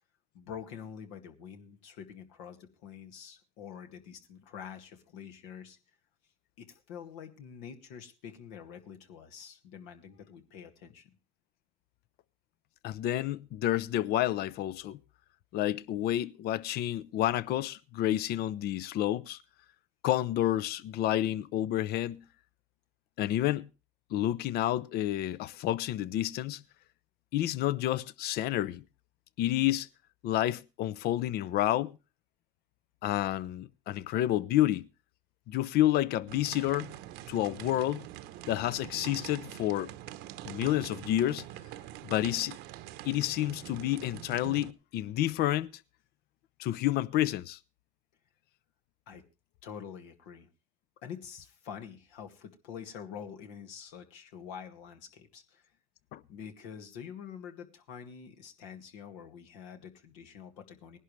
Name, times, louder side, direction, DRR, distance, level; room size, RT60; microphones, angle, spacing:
voice 1, 0.3-5.8 6.6-11.1 49.1-49.2 49.6-50.5 51.0-55.7 56.3-61.0, left 7 dB, 80° left, 2.1 m, -46 dB
voice 2, 12.8-15.0 15.5-19.4 20.0-22.2 23.2-23.7 24.1-26.6 27.3-28.8 29.4-29.9 30.2-31.9 33.0-34.9 35.5-36.9 37.3-38.1 38.5-39.9 40.4-41.4 42.0-42.6 43.0-45.7 46.6-47.6 56.1-56.2, left 13 dB, 65° left, 0.7 m, -29 dB
sound 1, 36.3-44.7, right 14 dB, 75° right, 0.9 m, -45 dB
19.0 x 11.0 x 3.2 m
supercardioid pair, 100°, 18 cm